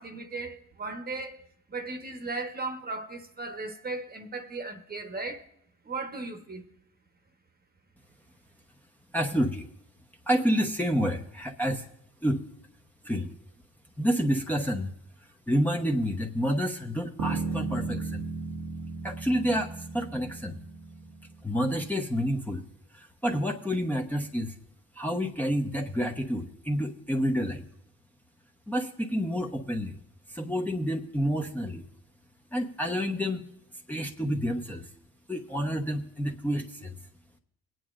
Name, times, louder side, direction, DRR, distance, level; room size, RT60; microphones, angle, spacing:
voice 1, 0.0-5.5 5.8-6.7, right 3 dB, 25° right, 1.2 m, -37 dB
voice 2, 9.1-9.7 10.3-11.9 12.2-12.4 13.0-13.3 14.0-14.9 15.5-18.2 19.0-20.6 21.4-22.6 22.9-24.6 24.9-27.6 28.7-30.0 30.3-31.9 32.5-33.5 33.9-34.9 35.3-37.0, equal, 5° left, 0.9 m, -29 dB
sound 1, 17.2-21.6, right 4 dB, 65° right, 1.1 m, -35 dB
22.0 x 9.3 x 2.5 m
supercardioid pair, 80°, 33 cm